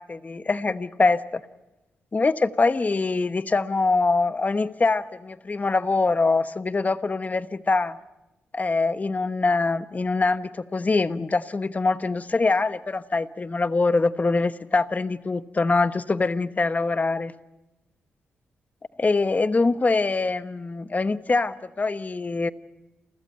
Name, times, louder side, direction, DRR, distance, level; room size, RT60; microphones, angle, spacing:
voice 1, 0.0-1.4 2.1-8.0 8.5-17.3 19.0-22.5, left 3 dB, 35° left, 12 dB, 1.1 m, -24 dB
29.0 x 14.5 x 9.1 m, 1.0 s
supercardioid pair, 50°, 5 cm